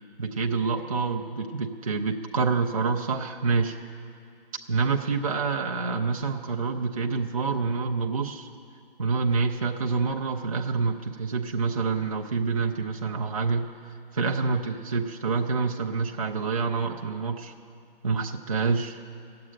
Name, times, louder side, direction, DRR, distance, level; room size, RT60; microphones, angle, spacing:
voice 1, 0.2-3.8 4.7-8.5 9.0-13.7 14.1-17.5 18.0-19.0, right 4 dB, 35° right, 1 dB, 0.7 m, -27 dB
15.0 x 7.8 x 9.9 m, 2.4 s
hypercardioid pair, 175°, 30 cm